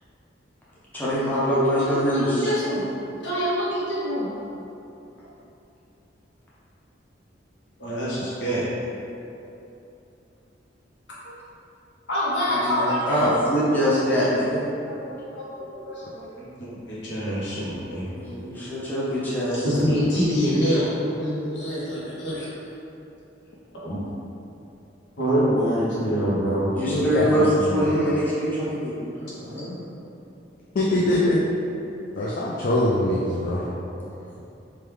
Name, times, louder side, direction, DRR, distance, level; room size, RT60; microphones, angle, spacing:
voice 1, 0.9-2.5 12.5-14.6 18.1-19.8 26.8-29.0 29.2-29.7, equal, 10° left, -10 dB, 0.6 m, -24 dB
voice 2, 1.5-2.8 3.2-4.3 7.8-8.6 11.2-11.3 12.1-13.3 15.0-16.3 16.6-18.1 19.6-20.9 21.2-22.5 23.8-24.0 25.2-27.9 30.9-31.1, equal, 70° left, -8 dB, 0.9 m, -26 dB
voice 3, 26.8-27.3 30.8-31.4 32.2-33.6, left 1 dB, 50° left, -5 dB, 0.3 m, -23 dB
3.1 x 2.2 x 3.3 m, 2.9 s
head